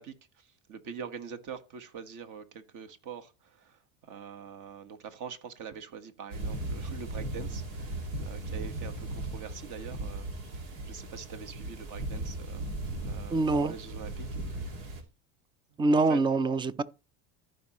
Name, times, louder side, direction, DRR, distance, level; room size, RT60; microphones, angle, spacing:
voice 1, 0.0-10.3 10.5-12.7 13.0-15.0 15.9-16.2, right 7 dB, 50° right, 1.5 m, -44 dB
sound 1, 6.3-15.0, right 2 dB, 90° right, 2.2 m, -37 dB
voice 2, 13.3-13.7 15.8-16.8, right 3 dB, 15° right, 0.3 m, -25 dB
14.5 x 5.3 x 3.0 m
supercardioid pair, 110°, 40 cm